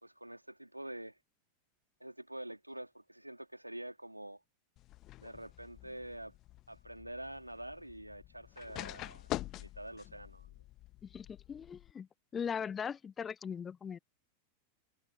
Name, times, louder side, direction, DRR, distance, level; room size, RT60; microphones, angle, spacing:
voice 1, 0.0-1.2 2.0-4.4 5.2-6.3 6.7-9.3 9.6-10.5, right 1 dB, 85° right, 3.4 m, -46 dB
sound 1, 4.8-11.9, left 17 dB, 35° left, 1.3 m, -46 dB
voice 2, 11.0-12.1 12.3-14.0, left 7 dB, 20° left, 0.8 m, -39 dB
figure-of-eight pair, 90°, 0 cm